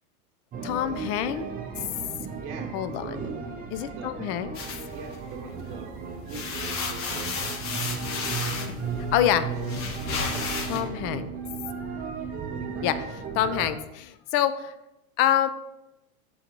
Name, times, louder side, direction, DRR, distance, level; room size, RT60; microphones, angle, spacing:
sound 1, 0.5-13.7, right 5 dB, 20° right, 0.6 m, -36 dB
voice 1, 0.6-1.5 2.7-3.3 3.7-4.6 9.1-9.5 10.7-11.3 12.8-12.9 13.3-14.7 15.2-15.5, left 11 dB, 35° left, 12 dB, 0.4 m, -26 dB
voice 2, 2.4-4.2 4.9-6.0 6.2-7.6 12.5-13.0, right 5 dB, 40° right, 1 dB, 1.2 m, -43 dB
sound 2, 4.6-5.7 6.1-10.8, left 5 dB, 60° left, 1.3 m, -33 dB
sound 3, 4.6-13.0, right 6 dB, 90° right, 0.7 m, -42 dB
7.0 x 3.9 x 4.4 m, 0.96 s
hypercardioid pair, 110°, 43 cm